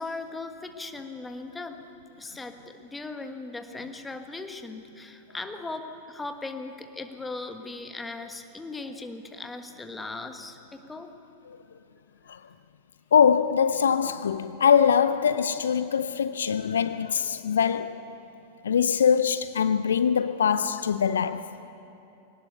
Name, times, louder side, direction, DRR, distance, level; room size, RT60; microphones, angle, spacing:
voice 1, 0.0-1.8 2.2-11.1, left 3 dB, 10° left, 1.4 m, -38 dB
voice 2, 13.1-18.1 18.6-21.5, left 7 dB, 65° left, 0.5 m, -23 dB
21.5 x 18.5 x 6.7 m
figure-of-eight pair, 90°, 0 cm